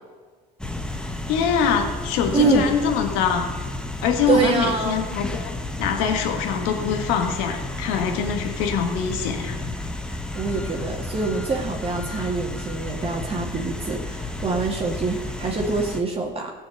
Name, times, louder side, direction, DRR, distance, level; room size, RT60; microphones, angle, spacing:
sound 1, 0.6-16.0, left 2 dB, 5° left, 1.2 m, -32 dB
voice 1, 1.3-3.5 4.0-5.5 5.8-9.6, left 7 dB, 75° left, 5 dB, 1.7 m, -23 dB
voice 2, 2.3-2.7 4.3-5.0 10.3-16.5, right 4 dB, 30° right, -1 dB, 2.4 m, -25 dB
16.0 x 6.1 x 8.0 m, 1.5 s
supercardioid pair, 85°, 20 cm